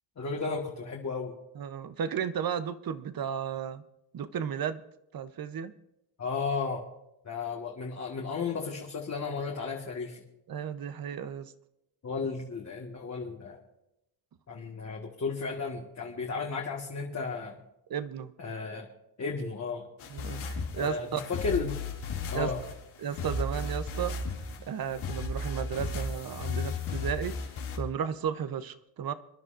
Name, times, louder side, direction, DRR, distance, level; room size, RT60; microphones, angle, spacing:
voice 1, 0.2-1.4 6.2-6.8 7.2-10.2 12.0-13.6 14.5-17.6 18.4-18.9 19.2-19.9 20.8-21.8 22.3-22.6, left 4 dB, 35° left, -1 dB, 1.7 m, -34 dB
voice 2, 1.6-3.8 4.1-4.8 5.1-5.7 10.5-11.5 17.9-18.3 20.1-21.2 22.3-22.5 23.0-24.1 24.7-27.3 27.7-29.1, right 8 dB, 45° right, 12 dB, 0.9 m, -34 dB
sound 1, 20.0-27.8, left 3 dB, 90° left, 2.7 m, -35 dB
26.5 x 11.0 x 2.6 m, 0.87 s
cardioid pair, 100°, 47 cm